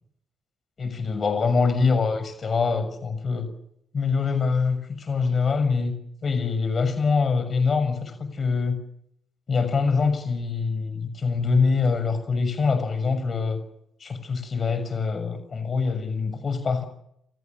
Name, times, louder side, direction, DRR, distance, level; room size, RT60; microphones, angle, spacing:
voice 1, 0.8-3.5 3.9-5.9 6.2-8.8 9.5-13.6 14.0-16.9, left 4 dB, 45° left, 11 dB, 6.4 m, -24 dB
29.0 x 23.0 x 7.4 m, 0.75 s
hypercardioid pair, 50°, 0 cm